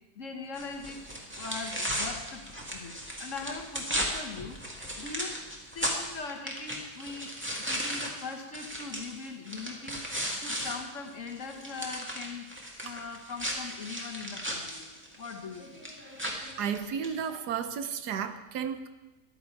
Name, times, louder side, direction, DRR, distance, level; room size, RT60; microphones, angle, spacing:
voice 1, 0.1-1.0 1.3-2.5 2.7-4.6 5.0-5.4 5.7-7.4 7.7-10.0 10.4-12.5 12.8-14.9 15.2-15.8, left 4 dB, 55° left, 4 dB, 1.6 m, -40 dB
sound 1, 0.5-10.8 11.1-17.2, equal, 5° right, 1.8 m, -36 dB
voice 2, 16.6-18.9, right 7 dB, 90° right, 10 dB, 1.4 m, -33 dB
13.5 x 11.0 x 4.7 m, 1.1 s
omnidirectional pair, 1.7 m